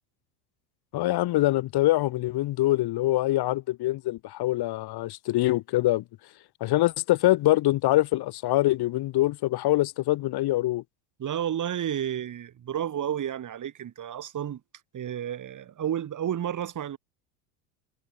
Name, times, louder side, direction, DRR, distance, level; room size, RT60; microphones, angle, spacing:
voice 1, 0.9-6.0 6.6-10.8, left 16 dB, 55° left, 3.9 m, -24 dB
voice 2, 11.2-14.6 14.9-17.0, right 10 dB, 40° right, 7.1 m, -31 dB
supercardioid pair, 95°, 46 cm